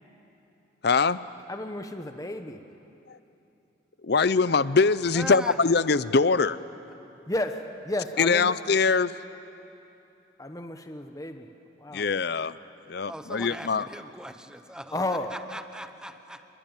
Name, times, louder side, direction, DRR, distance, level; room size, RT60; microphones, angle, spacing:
voice 1, 0.8-1.2 3.1-3.2 4.0-6.6 8.2-9.1 11.9-12.6 12.9-13.9, left 4 dB, 55° left, 16 dB, 0.6 m, -23 dB
voice 2, 1.5-2.6 7.3-7.5 7.8-8.6 10.4-11.5 11.8-12.1 14.9-15.3, left 1 dB, 20° left, 6 dB, 1.1 m, -32 dB
voice 3, 5.1-5.6 13.1-16.4, right 1 dB, 5° right, 9 dB, 0.9 m, -40 dB
27.0 x 22.5 x 9.1 m, 2.8 s
head